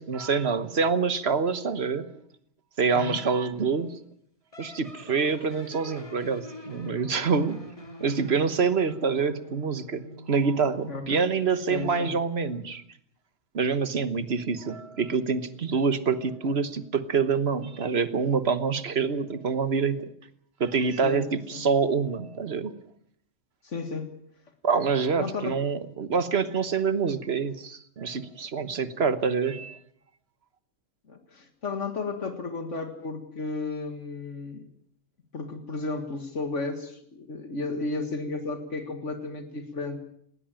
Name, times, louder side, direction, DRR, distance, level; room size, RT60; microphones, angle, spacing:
voice 1, 0.0-2.2 2.8-4.0 4.6-7.6 8.0-10.0 10.3-12.8 13.5-20.1 20.6-22.7 24.6-29.8, right 5 dB, 55° right, 13 dB, 1.5 m, -26 dB
sound 1, 4.5-10.6, left 2 dB, 25° left, 2.4 m, -45 dB
voice 2, 10.8-11.2 11.7-12.1 21.0-21.3 21.5-21.6 23.6-24.1 25.2-25.6 31.1-34.6 35.3-40.0, left 3 dB, 70° left, 7 dB, 2.2 m, -33 dB
19.5 x 19.0 x 8.9 m, 0.68 s
omnidirectional pair, 1.3 m